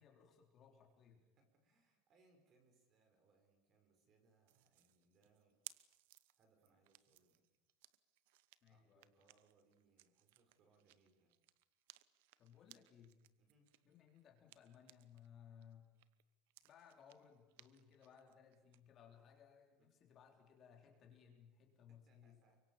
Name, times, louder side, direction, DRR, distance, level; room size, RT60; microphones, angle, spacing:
voice 1, 0.0-1.2 8.6-9.3 12.4-13.2 13.8-15.9 16.6-22.4, left 8 dB, 30° left, 2 dB, 3.9 m, -63 dB
voice 2, 1.4-5.6 6.4-7.5 8.7-11.4 13.4-13.7 19.8-19.9 21.9-22.6, right 3 dB, 30° right, 5 dB, 5.5 m, -75 dB
sound 1, 4.5-15.3 15.6-18.8, right 17 dB, 75° right, 1.1 m, -63 dB
29.5 x 24.5 x 7.4 m, 1.0 s
cardioid pair, 175°, 0 cm